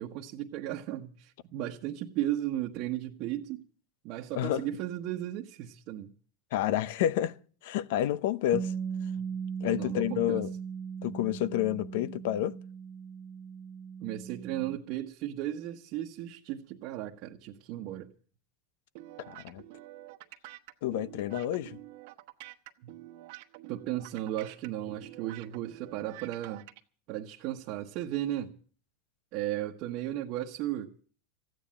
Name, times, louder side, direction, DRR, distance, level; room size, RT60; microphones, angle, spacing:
voice 1, 0.0-3.7 4.0-6.1 9.7-10.4 14.0-18.1 23.7-26.7 27.1-28.6 29.3-30.9, right 13 dB, 50° right, 1.2 m, -35 dB
voice 2, 4.3-4.7 6.5-7.3 7.6-8.7 9.6-10.5 11.0-12.6 19.3-19.6 20.8-21.8, left 12 dB, 70° left, 0.8 m, -29 dB
Bass guitar, 8.5-14.8, right 7 dB, 25° right, 0.7 m, -38 dB
sound 1, 18.9-26.8, right 17 dB, 65° right, 1.2 m, -48 dB
15.0 x 9.4 x 8.7 m
supercardioid pair, 145°, 0 cm